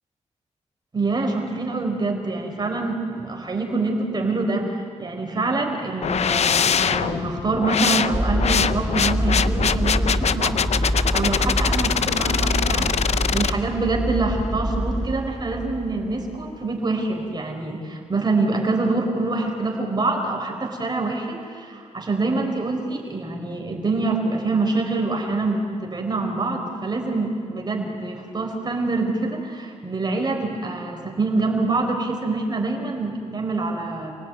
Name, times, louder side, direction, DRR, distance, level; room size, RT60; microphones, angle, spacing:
voice 1, 0.9-10.6 10.8-34.2, right 3 dB, 35° right, 2 dB, 4.8 m, -25 dB
sound 1, 6.0-13.5, left 7 dB, 65° left, 0.7 m, -23 dB
sound 2, 8.1-16.4, right 1 dB, ahead, 1.7 m, -26 dB
28.5 x 18.0 x 9.4 m, 2.3 s
cardioid pair, 95°, 12 cm